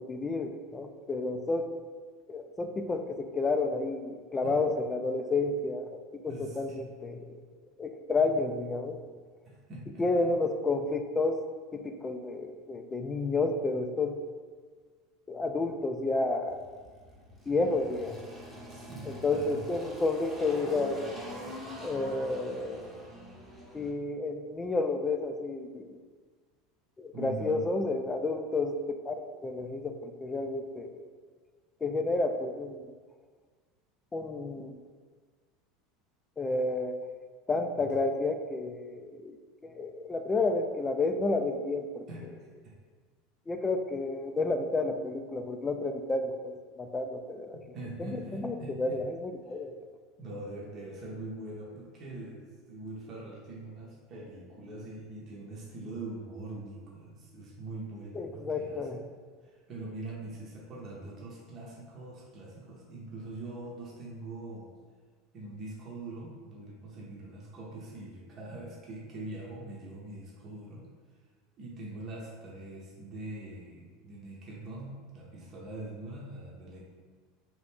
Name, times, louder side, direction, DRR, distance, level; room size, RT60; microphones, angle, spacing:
voice 1, 0.0-1.8 2.3-7.4 7.8-9.0 10.0-11.4 11.7-14.2 15.3-16.6 17.5-18.2 19.1-21.1 21.8-22.9 23.7-26.0 27.0-31.0 31.8-32.9 34.1-34.7 36.4-37.0 37.5-39.4 39.6-42.1 43.5-47.6 48.0-49.7 58.2-59.0, left 3 dB, 20° left, 7 dB, 0.3 m, -31 dB
voice 2, 6.3-6.8 9.4-10.3 18.7-19.7 27.1-27.8 37.8-37.9 42.1-42.5 47.5-49.0 50.2-59.0 59.4-64.7 65.3-70.9 71.6-76.8, right 2 dB, 45° right, -4 dB, 0.8 m, -43 dB
Engine, 16.5-23.9, equal, 15° right, 0.8 m, -44 dB
2.9 x 2.5 x 3.5 m, 1.5 s
hypercardioid pair, 95°, 0 cm